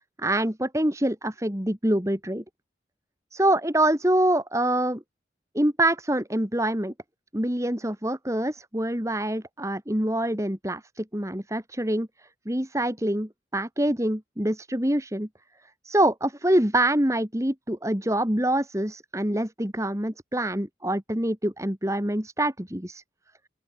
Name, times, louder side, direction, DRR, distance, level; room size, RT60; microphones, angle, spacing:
voice 1, 0.2-2.4 3.3-5.0 5.5-6.9 7.3-12.1 12.5-15.3 15.8-23.0, right 1 dB, 15° right, 2.2 m, -25 dB
open air
head